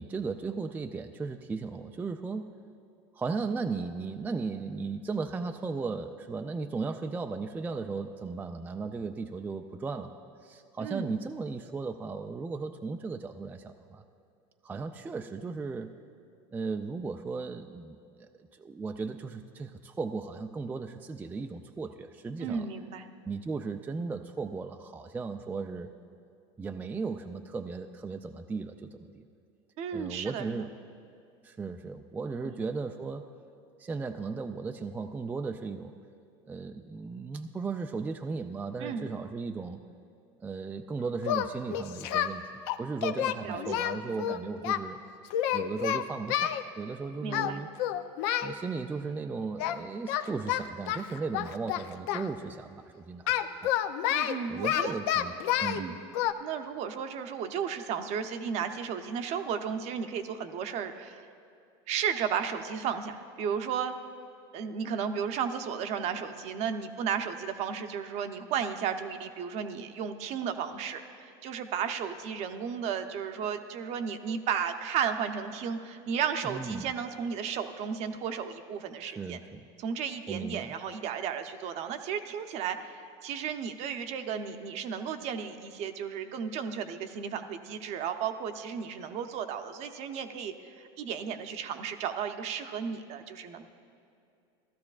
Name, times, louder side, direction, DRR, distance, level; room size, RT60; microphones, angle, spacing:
voice 1, 0.0-2.5 3.1-14.0 14.6-15.9 16.5-22.7 23.3-25.9 26.6-29.3 29.9-30.7 31.4-33.3 33.8-35.9 36.4-39.8 40.4-42.5 42.8-45.0 45.5-47.7 48.4-53.7 54.5-55.3 55.6-56.0 76.4-76.9 79.1-79.7 80.3-80.7, right 4 dB, 10° right, 6 dB, 0.3 m, -36 dB
voice 2, 22.4-23.1 29.8-30.6 32.4-32.5 38.8-39.0 43.4-43.6 44.0-44.5 47.2-47.6 54.1-54.9 55.8-55.9 56.4-61.2 61.9-63.9 64.5-79.4 79.8-93.7, right 7 dB, 55° right, 7 dB, 0.7 m, -34 dB
Singing, 41.2-42.3 42.7-44.8 45.3-46.6 47.3-47.5 47.8-48.5 49.6-49.8 50.1-52.3 53.3-55.8 56.1-56.3, left 11 dB, 75° left, 0.5 m, -29 dB
15.5 x 13.0 x 2.4 m, 2.5 s
supercardioid pair, 115°, 14 cm